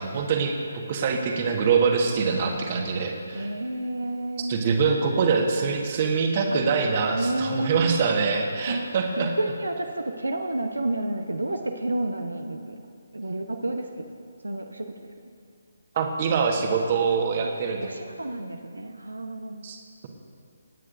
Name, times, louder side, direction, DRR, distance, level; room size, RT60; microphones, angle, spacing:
voice 1, 0.0-3.4 4.5-9.3 15.9-17.9 19.6-19.8, right 5 dB, 35° right, 2 dB, 1.5 m, -24 dB
voice 2, 3.3-4.6 6.4-6.6 7.1-8.0 8.7-8.9 9.2-12.8 13.1-14.0 14.4-15.1 16.6-17.1 17.5-19.6, right 1 dB, 80° right, 4 dB, 0.9 m, -31 dB
25.0 x 9.5 x 2.6 m, 2.3 s
figure-of-eight pair, 145°, 0 cm